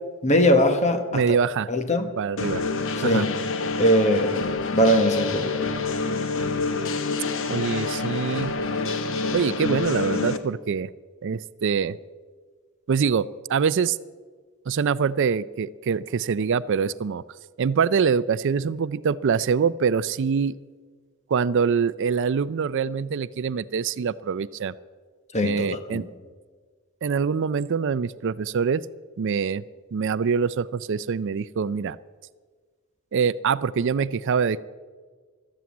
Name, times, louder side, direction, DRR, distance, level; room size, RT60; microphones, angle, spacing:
voice 1, 0.2-1.2 1.7-2.1 3.0-3.3 3.8-4.4 4.7-5.6 25.3-26.0, equal, 30° left, 7 dB, 1.3 m, -21 dB
voice 2, 1.1-1.7 2.2-2.6 3.0-3.3 7.5-8.5 9.3-10.9 11.2-12.0 12.9-14.0 14.7-17.2 17.6-20.6 21.3-24.7 25.4-26.0 27.0-28.8 29.2-29.6 29.9-32.0 33.1-34.6, right 6 dB, 55° right, 17 dB, 0.4 m, -24 dB
sound 1, 2.4-10.4, left 4 dB, 60° left, 1.0 m, -27 dB
14.0 x 12.5 x 8.4 m, 1.5 s
head